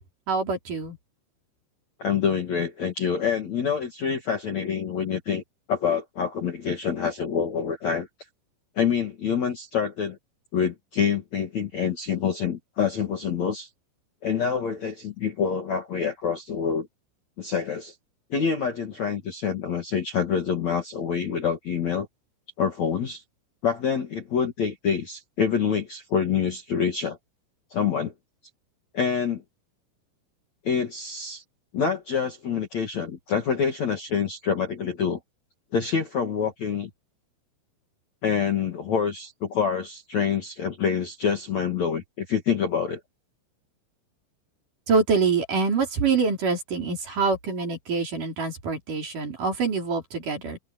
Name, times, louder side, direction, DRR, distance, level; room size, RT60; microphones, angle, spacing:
voice 1, 0.3-1.0 44.9-50.6, right 4 dB, 45° right, 5.2 m, -25 dB
voice 2, 2.0-5.4 5.7-8.1 8.8-10.2 10.5-13.7 14.2-16.9 17.4-17.9 18.3-22.1 22.6-23.2 23.6-27.2 27.7-28.1 28.9-29.4 30.6-31.4 31.7-35.2 35.7-36.9 38.2-43.0, left 6 dB, 50° left, 2.5 m, -26 dB
open air
omnidirectional pair, 5.8 m